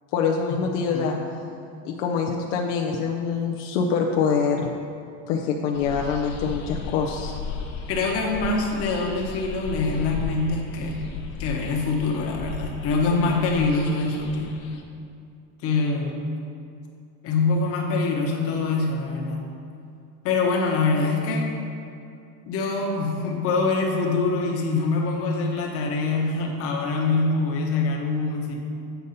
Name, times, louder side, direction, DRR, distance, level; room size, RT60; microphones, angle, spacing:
voice 1, 0.1-1.2 1.8-4.7 5.3-7.3, left 6 dB, 85° left, 0 dB, 0.7 m, -25 dB
sound 1, 5.7-14.8, left 5 dB, 55° left, 0.9 m, -35 dB
voice 2, 7.9-11.0 11.4-14.6 15.6-16.2 17.2-19.4 20.2-21.5 22.5-28.6, left 3 dB, 40° left, 0 dB, 1.1 m, -24 dB
8.1 x 5.3 x 4.1 m, 2.5 s
cardioid pair, 160°, 36 cm